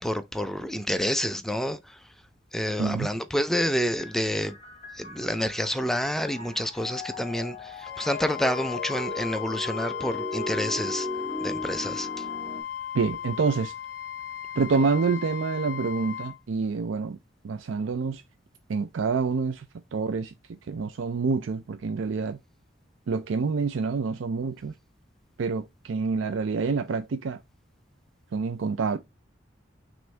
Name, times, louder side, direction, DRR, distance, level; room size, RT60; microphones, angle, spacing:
voice 1, 0.0-2.0 2.5-4.6 5.0-11.1 11.4-12.1, equal, ahead, 0.4 m, -28 dB
voice 2, 2.8-3.1 12.9-13.7 14.5-17.2 17.4-18.2 18.7-19.7 19.9-22.4 23.1-24.7 25.4-27.4 28.3-29.0, right 4 dB, 90° right, 0.4 m, -27 dB
sound 1, 3.8-12.6, left 1 dB, 35° left, 2.2 m, -38 dB
Wind instrument woodwind instrument, 7.8-16.4, left 9 dB, 55° left, 0.7 m, -36 dB
6.1 x 2.6 x 3.3 m
head